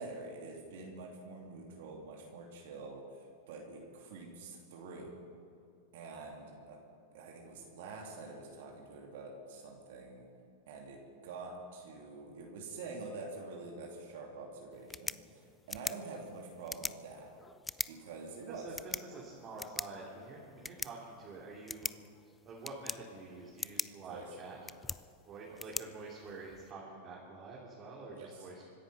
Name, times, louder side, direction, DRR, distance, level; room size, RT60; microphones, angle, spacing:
voice 1, 0.0-5.3 5.9-6.8 7.1-10.3 10.7-17.3 17.9-18.7 24.1-24.2 25.5-25.6 28.1-28.5, right 3 dB, 65° right, 0 dB, 2.7 m, -46 dB
sound 1, 14.7-26.7, left 3 dB, 15° left, 0.4 m, -44 dB
voice 2, 18.5-21.9 22.4-24.6 25.2-28.6, right 3 dB, 35° right, -4 dB, 3.2 m, -47 dB
25.0 x 10.5 x 5.6 m, 2.4 s
hypercardioid pair, 105°, 0 cm